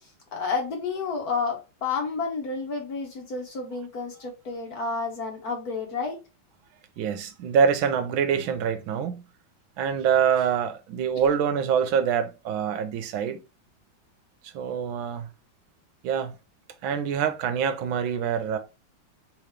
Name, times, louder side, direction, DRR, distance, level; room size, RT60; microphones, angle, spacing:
voice 1, 0.3-6.2, left 4 dB, 55° left, 1.3 m, -30 dB
voice 2, 7.0-9.2 9.8-13.4 14.5-15.3 16.0-16.3 16.8-18.6, right 7 dB, 75° right, 1.4 m, -25 dB
3.6 x 3.0 x 4.8 m
omnidirectional pair, 2.2 m